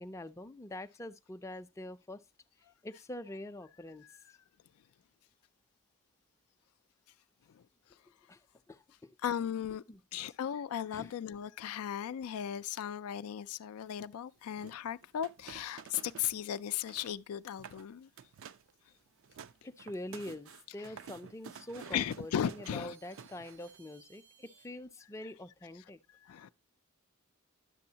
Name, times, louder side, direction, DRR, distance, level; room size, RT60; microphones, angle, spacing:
voice 1, 0.0-2.2 2.8-4.1 8.3-9.2 9.9-10.3 10.9-11.1 19.6-26.0, left 1 dB, 15° left, 0.4 m, -45 dB
voice 2, 9.2-9.8 10.1-18.1 20.8-20.9 21.9-23.0 26.2-26.5, left 9 dB, 85° left, 0.4 m, -36 dB
sound 1, 14.6-16.4 16.7-17.2 17.5-17.8 18.2-18.7 19.1-23.8, right 7 dB, 60° right, 0.4 m, -51 dB
sound 2, 19.1-24.7, right 6 dB, 80° right, 1.4 m, -66 dB
10.5 x 6.9 x 2.8 m
head